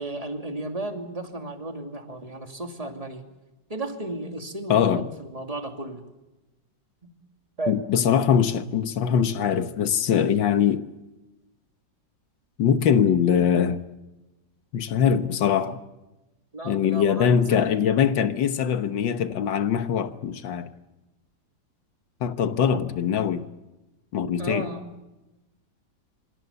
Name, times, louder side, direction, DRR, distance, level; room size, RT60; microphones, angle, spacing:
voice 1, 0.0-3.3 3.7-6.1 7.0-7.2 7.6-7.8 16.5-17.8 22.6-22.8 24.4-24.9, right 2 dB, 20° right, 2.7 m, -34 dB
voice 2, 4.7-5.1 7.7-10.9 12.6-13.8 14.7-15.8 16.7-20.7 22.2-23.5 24.1-24.7, left 8 dB, 90° left, 1.9 m, -22 dB
27.0 x 25.5 x 7.0 m
omnidirectional pair, 2.0 m